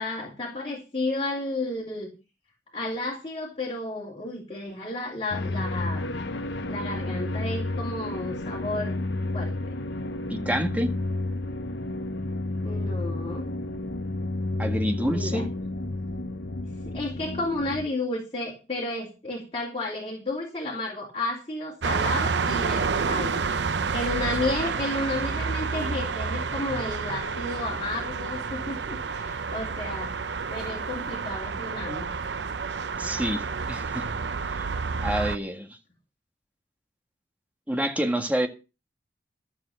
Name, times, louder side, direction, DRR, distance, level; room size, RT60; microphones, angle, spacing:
voice 1, 0.0-2.1 2.7-6.2 6.7-9.0 9.3-9.8 12.6-13.5 15.0-15.5 16.8-23.4 23.7-30.2 30.5-32.1, left 2 dB, 30° left, 2.9 m, -32 dB
sound 1, 5.3-17.9, left 2 dB, 65° left, 1.0 m, -31 dB
voice 2, 10.3-10.9 14.6-15.4 33.0-34.1 34.6-34.7 35.0-35.7 37.7-38.5, equal, 10° right, 1.8 m, -27 dB
sound 2, 21.8-35.4, right 5 dB, 70° right, 0.7 m, -29 dB
13.0 x 7.3 x 6.4 m
head